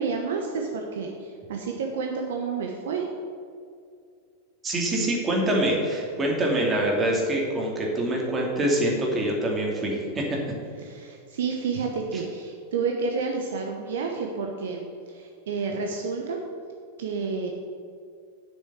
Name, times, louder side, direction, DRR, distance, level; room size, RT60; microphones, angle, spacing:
voice 1, 0.0-3.1 10.8-16.4 17.0-17.5, right 5 dB, 60° right, 2 dB, 1.0 m, -30 dB
voice 2, 4.6-10.4 12.1-12.2, right 1 dB, 20° right, -1 dB, 2.6 m, -25 dB
7.6 x 6.6 x 8.1 m, 2.3 s
figure-of-eight pair, 90°, 0 cm